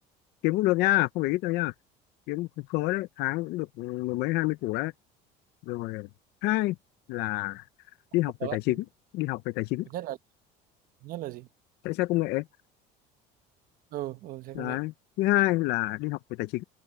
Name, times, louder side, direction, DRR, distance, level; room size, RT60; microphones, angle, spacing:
voice 1, 0.4-1.7 2.3-4.9 5.7-6.1 6.4-6.8 7.1-7.6 8.1-8.8 9.1-9.9 11.8-12.4 14.5-16.6, left 19 dB, 60° left, 0.6 m, -27 dB
voice 2, 8.4-8.8 9.9-10.2 11.0-11.5 13.9-14.8, right 14 dB, 50° right, 1.3 m, -37 dB
cardioid pair, 165°, 19 cm